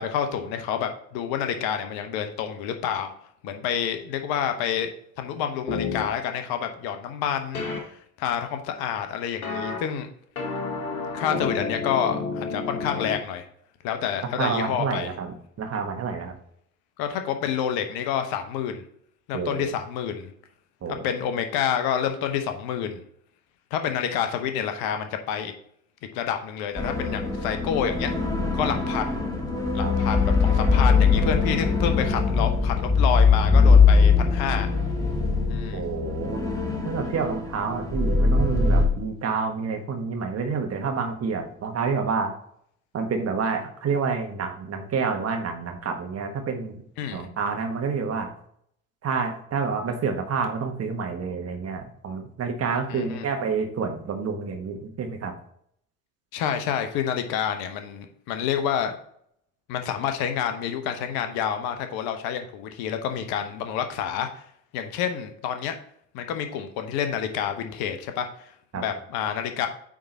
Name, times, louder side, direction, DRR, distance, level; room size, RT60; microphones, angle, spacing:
voice 1, 0.0-3.1 3.4-4.9 5.2-10.1 11.1-13.4 13.8-15.1 17.0-18.8 19.3-20.3 20.9-23.0 23.7-25.5 26.1-28.1 28.5-29.2 29.7-34.7 35.5-35.8 47.0-47.2 52.9-53.2 56.3-59.0 59.7-64.3 64.7-65.8 66.1-69.7, left 8 dB, 55° left, 7 dB, 1.0 m, -28 dB
sound 1, 5.7-6.0 7.5-7.8 9.4-9.8 10.4-13.2, left 4 dB, 80° left, 1.2 m, -30 dB
voice 2, 14.4-16.3 19.3-19.7 20.8-21.1 29.8-29.9 35.7-36.4 36.8-42.3 42.9-46.8 47.1-48.3 49.0-55.3 68.7-68.8, right 5 dB, 35° right, 4 dB, 1.4 m, -28 dB
sound 2, 26.8-38.8, left 4 dB, 10° left, 1.7 m, -21 dB
8.7 x 3.6 x 4.1 m, 0.67 s
figure-of-eight pair, 60°, 43 cm